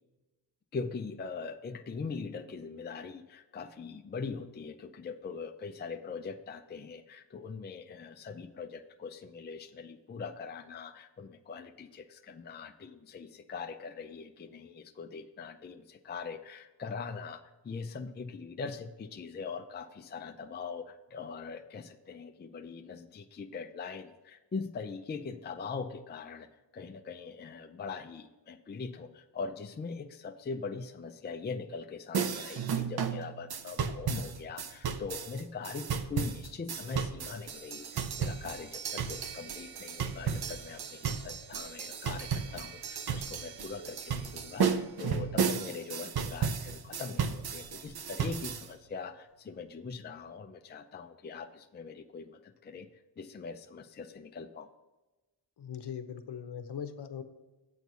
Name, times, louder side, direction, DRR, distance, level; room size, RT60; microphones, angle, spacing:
voice 1, 0.7-54.7, left 5 dB, 25° left, 6 dB, 0.4 m, -42 dB
sound 1, 32.1-48.7, right 6 dB, 60° right, 0.7 m, -34 dB
voice 2, 55.6-57.2, left 8 dB, 65° left, 9 dB, 0.9 m, -40 dB
8.1 x 4.6 x 6.7 m, 1.1 s
wide cardioid pair, 105°, 44 cm